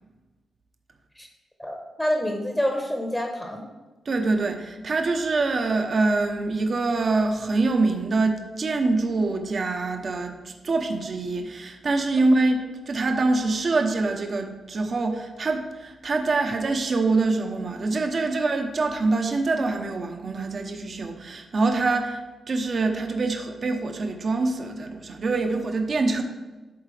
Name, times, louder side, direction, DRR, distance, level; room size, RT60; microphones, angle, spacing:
voice 1, 1.6-3.7, equal, 10° left, 2 dB, 1.0 m, -27 dB
voice 2, 4.1-22.2 22.5-26.2, right 3 dB, 50° right, 4 dB, 0.9 m, -25 dB
11.5 x 4.0 x 3.3 m, 1.2 s
cardioid pair, 85°, 0 cm